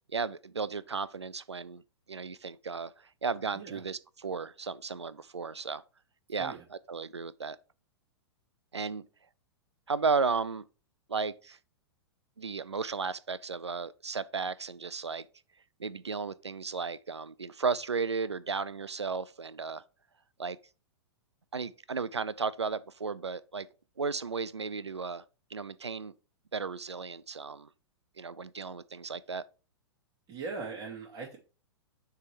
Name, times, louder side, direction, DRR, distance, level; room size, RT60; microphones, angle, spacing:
voice 1, 0.1-1.8 2.1-2.9 3.2-5.8 6.3-6.6 6.9-7.6 8.7-9.1 9.9-10.6 11.1-11.6 12.4-15.3 15.8-19.8 20.4-20.6 21.5-23.7 24.0-25.2 25.5-26.1 26.5-27.7 28.2-29.4, right 5 dB, 85° right, 0.4 m, -34 dB
voice 2, 30.3-31.4, right 4 dB, 25° right, 2.7 m, -40 dB
6.5 x 3.5 x 4.6 m
figure-of-eight pair, 105°, 14 cm